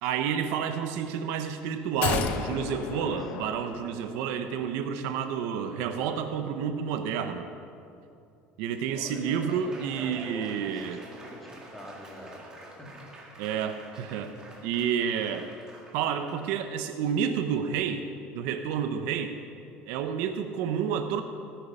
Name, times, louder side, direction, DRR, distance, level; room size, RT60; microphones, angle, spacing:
voice 1, 0.0-7.5 8.6-11.0 13.4-14.4 14.6-15.5 15.9-18.1 18.3-19.4 19.9-21.2, right 7 dB, 70° right, 8 dB, 0.8 m, -30 dB
sound 1, 2.0-4.4 4.7-4.8, left 7 dB, 45° left, 0.8 m, -33 dB
Laughter / Applause, 8.6-16.5, right 1 dB, 20° right, 1.9 m, -47 dB
voice 2, 8.9-9.3 9.9-12.4 12.8-13.0, left 1 dB, 5° left, -3 dB, 2.2 m, -46 dB
18.0 x 9.3 x 5.5 m, 2.5 s
cardioid pair, 170°, 4 cm